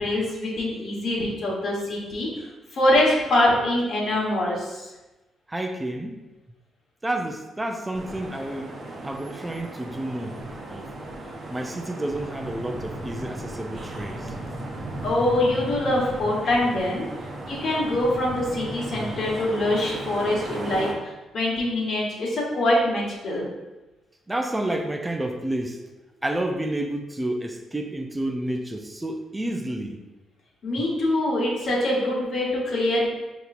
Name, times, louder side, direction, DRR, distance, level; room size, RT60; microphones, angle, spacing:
voice 1, 0.0-4.9 15.0-17.1 17.4-23.4 30.6-33.1, left 1 dB, 60° left, -3 dB, 1.3 m, -24 dB
voice 2, 5.5-6.2 7.0-8.7 9.0-10.4 10.7-10.9 11.5-14.4 24.3-25.8 26.2-30.0, right 1 dB, 10° right, 4 dB, 0.4 m, -30 dB
sound 1, 7.9-20.9, right 1 dB, 45° right, 0.8 m, -35 dB
5.3 x 2.9 x 2.5 m, 1.1 s
cardioid pair, 90°, 0 cm